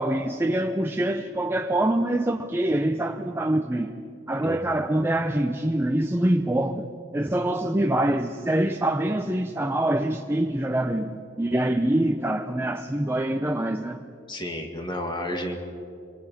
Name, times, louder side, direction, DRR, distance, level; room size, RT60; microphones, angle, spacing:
voice 1, 0.0-3.9 4.3-6.9 7.1-14.0, right 1 dB, 10° right, 0.6 m, -25 dB
voice 2, 4.4-4.8 14.3-15.6, left 1 dB, 25° left, 2.2 m, -32 dB
25.5 x 24.0 x 5.8 m
head